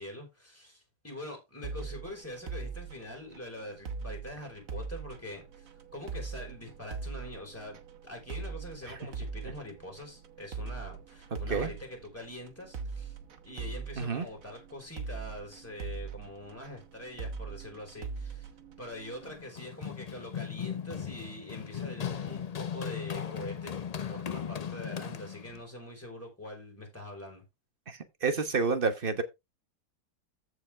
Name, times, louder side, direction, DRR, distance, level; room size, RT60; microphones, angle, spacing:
voice 1, 0.0-13.2 13.4-18.5 18.8-23.7 24.1-27.4, left 1 dB, 10° left, 4.5 m, -44 dB
sound 1, 1.6-19.4, right 5 dB, 60° right, 1.5 m, -41 dB
Run, 19.2-25.6, left 8 dB, 65° left, 0.3 m, -37 dB
voice 2, 27.9-29.2, right 4 dB, 35° right, 1.2 m, -29 dB
14.0 x 5.0 x 3.5 m
omnidirectional pair, 1.7 m